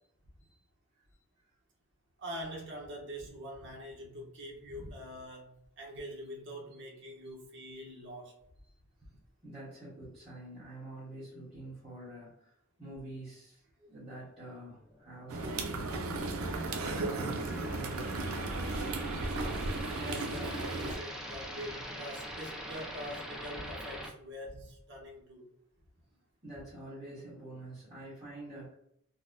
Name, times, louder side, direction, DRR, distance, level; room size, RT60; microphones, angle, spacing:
voice 1, 2.2-8.4 19.9-25.5, equal, 60° right, -2 dB, 0.9 m, -44 dB
voice 2, 9.4-12.5 12.8-16.0 16.8-18.9 26.4-28.7, right 1 dB, 25° right, -11 dB, 1.2 m, -46 dB
sound 1, 14.8-24.1, equal, 5° right, 0.4 m, -45 dB
sound 2, 15.3-21.0, right 2 dB, 85° right, 0.5 m, -35 dB
4.0 x 2.1 x 2.5 m, 0.72 s
head